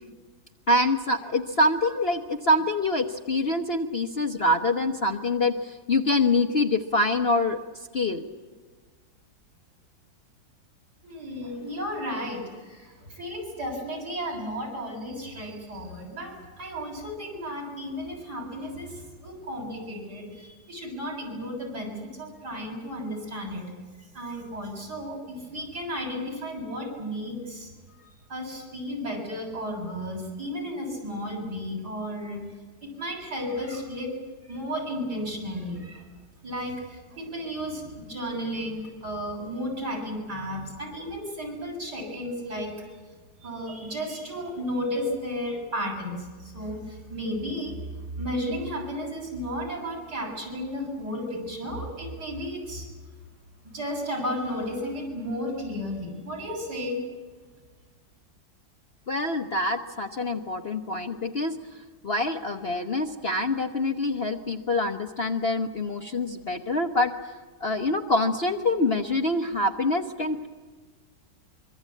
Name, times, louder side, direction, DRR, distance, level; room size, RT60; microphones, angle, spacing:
voice 1, 0.7-7.6 7.9-8.3 59.1-61.5 62.0-67.1 67.6-70.5, left 2 dB, 40° left, 4 dB, 1.1 m, -25 dB
voice 2, 11.0-23.7 24.1-27.7 28.0-32.5 32.8-34.1 34.5-36.0 36.4-42.7 43.4-47.8 48.2-52.9 53.7-57.0, equal, 60° right, -1 dB, 7.8 m, -33 dB
24.5 x 24.0 x 8.5 m, 1.4 s
omnidirectional pair, 1.9 m